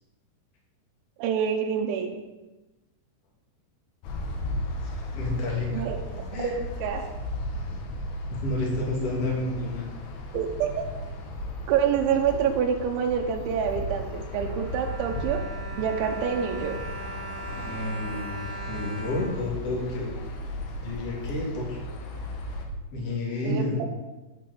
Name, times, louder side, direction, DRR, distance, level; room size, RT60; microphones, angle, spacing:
voice 1, 1.2-2.1 5.7-7.0 10.3-10.7 11.7-15.4 15.8-16.8 23.4-23.7, right 7 dB, 85° right, 2 dB, 3.3 m, -27 dB
sound 1, 4.0-22.7, left 1 dB, 70° left, 3.3 m, -35 dB
voice 2, 4.8-5.9 6.3-6.5 8.3-9.9 17.5-20.1 20.8-21.8 22.9-23.8, left 2 dB, 40° left, -2 dB, 2.9 m, -30 dB
Bowed string instrument, 14.1-20.3 21.0-21.1 21.4-21.5, right 2 dB, 50° right, 0.9 m, -40 dB
9.5 x 6.7 x 7.8 m, 1.1 s
omnidirectional pair, 5.3 m